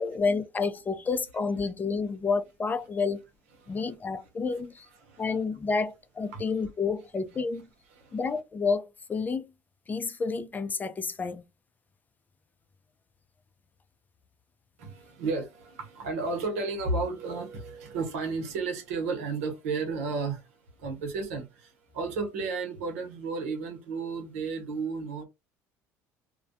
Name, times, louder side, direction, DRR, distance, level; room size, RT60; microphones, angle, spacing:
voice 1, 0.0-3.2 3.7-4.9 5.2-7.7 8.1-9.5 9.9-11.4, left 4 dB, 25° left, 0.4 m, -30 dB
voice 2, 3.6-4.0 5.0-5.2 6.3-6.4 7.9-8.2 14.8-25.2, right 4 dB, 85° right, 0.8 m, -33 dB
2.2 x 2.2 x 2.6 m
hypercardioid pair, 80°, 8 cm